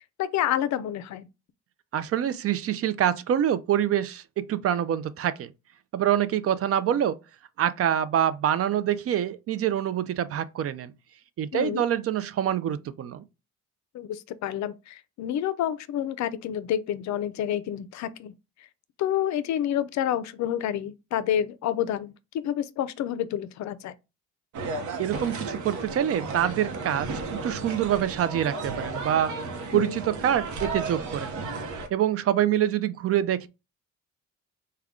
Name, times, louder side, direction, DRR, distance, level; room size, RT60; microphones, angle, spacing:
voice 1, 0.2-1.3 11.5-11.8 13.9-18.3 19.0-23.9 29.7-30.0, left 10 dB, 65° left, 0.4 m, -29 dB
voice 2, 1.9-5.5 5.9-7.2 7.6-10.9 11.4-13.2 25.0-29.3 29.7-31.3 31.9-33.5, right 10 dB, 50° right, 0.4 m, -26 dB
sound 1, 24.5-31.9, right 3 dB, 75° right, 0.8 m, -34 dB
3.5 x 2.2 x 3.5 m
cardioid pair, 90°, 30 cm